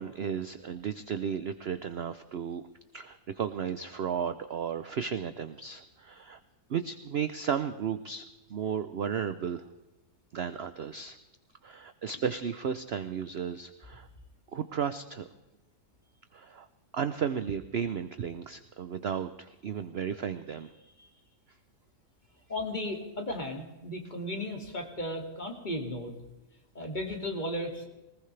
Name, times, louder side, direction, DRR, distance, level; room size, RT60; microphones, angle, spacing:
voice 1, 0.0-2.6 2.9-6.4 6.7-8.2 8.5-9.7 10.3-11.2 11.6-14.1 14.5-15.2 16.3-16.7 16.9-21.1, right 7 dB, 55° right, 10 dB, 0.7 m, -34 dB
voice 2, 22.5-26.2 26.7-27.9, left 1 dB, 30° left, 2 dB, 2.5 m, -35 dB
20.0 x 19.5 x 3.3 m, 1.0 s
omnidirectional pair, 1.7 m